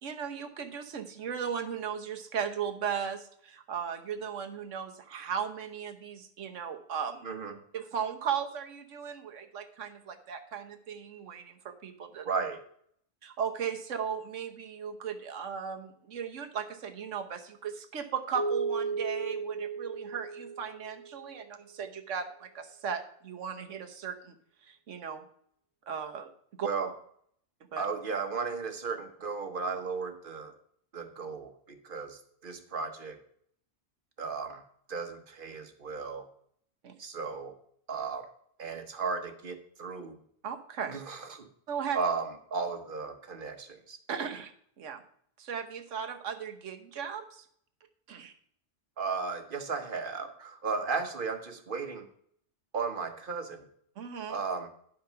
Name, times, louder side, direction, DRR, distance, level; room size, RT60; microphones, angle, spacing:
voice 1, 0.0-7.3 7.7-11.6 11.8-12.3 13.2-24.4 24.6-25.2 25.8-26.3 26.6-26.7 27.7-27.9 36.8-36.9 40.4-41.0 41.7-42.0 44.1-44.5 44.8-45.0 45.4-47.4 48.1-48.3 54.0-54.4, right 7 dB, 85° right, 7 dB, 1.4 m, -36 dB
voice 2, 7.2-7.6 12.2-12.6 26.6-26.9 27.8-30.5 30.9-33.2 34.2-34.6 34.9-36.2 37.0-37.5 37.9-38.3 38.6-40.2 40.9-41.5 41.9-44.0 49.0-52.1 52.7-53.7 54.3-54.7, right 5 dB, 45° right, 7 dB, 1.3 m, -35 dB
Keyboard (musical), 18.3-21.3, right 4 dB, 90° left, 3.3 m, -34 dB
11.0 x 5.8 x 5.6 m, 0.65 s
omnidirectional pair, 1.2 m